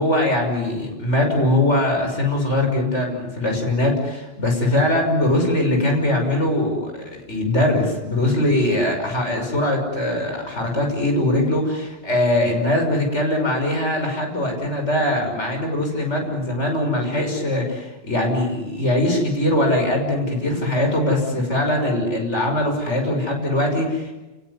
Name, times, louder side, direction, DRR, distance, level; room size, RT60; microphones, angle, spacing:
voice 1, 0.0-24.1, left 1 dB, 75° left, 2 dB, 6.6 m, -21 dB
29.0 x 20.0 x 9.8 m, 1.1 s
omnidirectional pair, 1.2 m